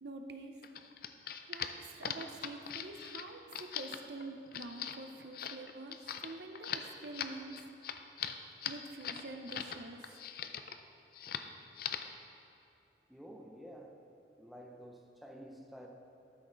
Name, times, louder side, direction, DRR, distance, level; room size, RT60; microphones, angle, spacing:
voice 1, 0.0-0.6 1.5-6.0 6.2-7.6 8.6-10.3, right 2 dB, 70° right, 5 dB, 0.7 m, -46 dB
sound 1, 0.6-9.8 10.0-10.8 11.1-11.5 11.8-12.2, left 9 dB, 55° left, 0.4 m, -41 dB
voice 2, 13.1-14.0 14.4-15.9, equal, ahead, 1 dB, 0.6 m, -51 dB
13.0 x 6.2 x 3.9 m, 2.9 s
head